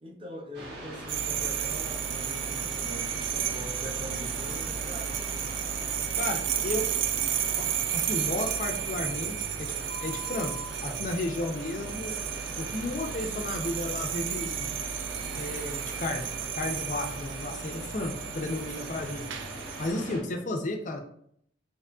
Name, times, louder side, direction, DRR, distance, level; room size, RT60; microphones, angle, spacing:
voice 1, 0.0-5.3 20.1-20.5, left 1 dB, 30° right, 0 dB, 0.6 m, -43 dB
sound 1, 0.5-20.2, right 1 dB, 70° right, 1.2 m, -41 dB
sound 2, 1.1-19.9, right 9 dB, 85° right, 0.3 m, -33 dB
voice 2, 6.2-6.9 7.6-7.7 7.9-9.7 10.0-10.5 10.8-12.2 12.6-14.7 15.4-16.2 16.5-19.4 19.8-21.0, left 2 dB, 45° left, 3 dB, 0.4 m, -33 dB
3.6 x 3.0 x 2.3 m, 0.68 s
head